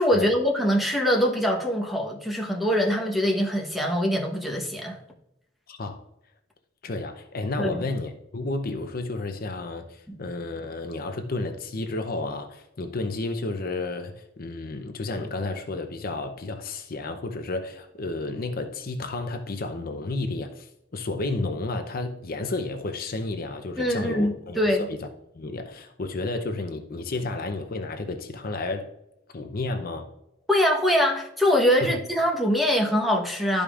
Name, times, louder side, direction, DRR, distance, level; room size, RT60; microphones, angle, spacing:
voice 1, 0.0-5.0 7.6-7.8 10.1-10.2 23.8-24.9 30.5-33.6, equal, ahead, 1.1 m, -23 dB
voice 2, 5.7-6.0 6.8-25.1 25.3-28.9 29.3-30.1 31.8-31.9, left 2 dB, 50° left, 0.7 m, -31 dB
12.5 x 5.2 x 2.4 m
head